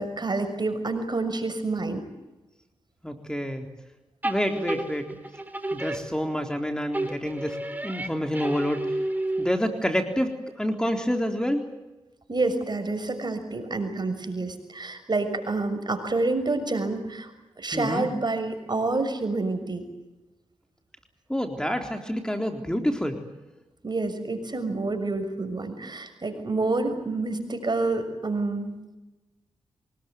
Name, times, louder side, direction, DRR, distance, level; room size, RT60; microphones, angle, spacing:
voice 1, 0.0-2.0 12.3-17.3 17.6-19.9 23.8-28.7, right 3 dB, 45° right, 8 dB, 6.4 m, -28 dB
voice 2, 3.0-3.7 4.2-5.2 5.7-7.6 7.8-9.0 9.4-11.7 17.7-18.1 21.3-23.2, equal, 5° left, 5 dB, 3.7 m, -28 dB
sound 1, 4.2-6.6 6.9-9.8, right 1 dB, 15° right, 3.9 m, -31 dB
25.0 x 20.5 x 9.4 m, 1.1 s
supercardioid pair, 40°, 11 cm